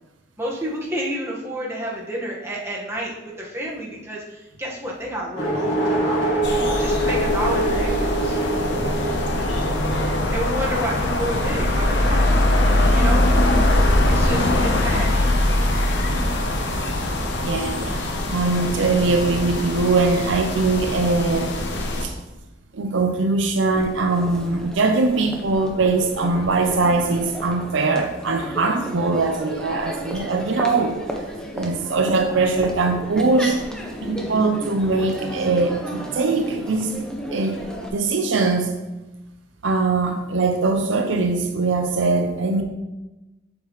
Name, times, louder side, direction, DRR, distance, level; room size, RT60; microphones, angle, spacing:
voice 1, 0.4-6.2 6.8-8.4 9.6-10.0 10.3-12.3 12.9-13.2 14.1-15.2, right 1 dB, 15° right, -4 dB, 1.4 m, -30 dB
sound 1, 5.3-17.6, right 1 dB, 90° left, 2.1 m, -27 dB
sound 2, 6.4-22.0, left 1 dB, 65° left, 0.9 m, -22 dB
voice 2, 17.4-21.5 22.0-22.1 22.7-30.9 31.5-33.7 34.0-36.9 37.3-37.6 37.9-38.7 39.6-42.6, right 3 dB, 70° right, 5 dB, 0.6 m, -21 dB
Crowd, 23.8-37.9, equal, 5° left, 0.9 m, -33 dB
7.2 x 6.8 x 3.1 m, 1.1 s
head